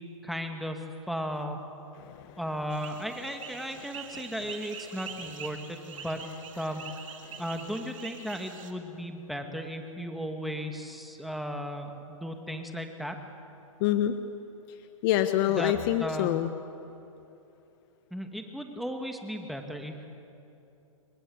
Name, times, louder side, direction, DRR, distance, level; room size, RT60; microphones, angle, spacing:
voice 1, 0.2-1.6 2.4-6.2 6.6-6.8 7.4-13.2 15.5-15.7 16.0-16.4 18.1-20.1, equal, ahead, 4 dB, 2.4 m, -35 dB
voice 2, 2.0-2.4 7.2-7.4 13.8-14.2 15.0-16.5, left 12 dB, 40° left, 9 dB, 1.3 m, -26 dB
sound 1, 2.7-8.7, right 7 dB, 65° right, 3.1 m, -44 dB
29.0 x 23.5 x 8.1 m, 3.0 s
hypercardioid pair, 125°, 18 cm